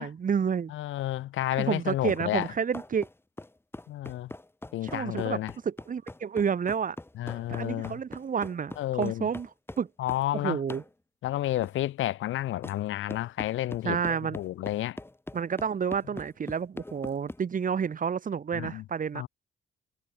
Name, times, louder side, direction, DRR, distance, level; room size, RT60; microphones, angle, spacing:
voice 1, 0.0-0.7 1.6-3.1 4.8-5.4 5.7-7.0 7.5-9.5 9.8-9.9 10.3-10.8 13.8-14.4 15.3-19.2, right 7 dB, 40° right, 1.7 m, -30 dB
voice 2, 0.7-2.5 3.9-4.3 4.7-5.5 7.2-8.0 8.8-9.3 10.0-10.6 11.2-15.0 18.5-18.8 19.1-19.3, left 14 dB, 80° left, 1.6 m, -31 dB
sound 1, 2.1-10.3 10.7-10.9 11.6-11.8 12.6-12.8 13.1-17.4, left 2 dB, 10° left, 5.0 m, -42 dB
cardioid pair, 90°, 20 cm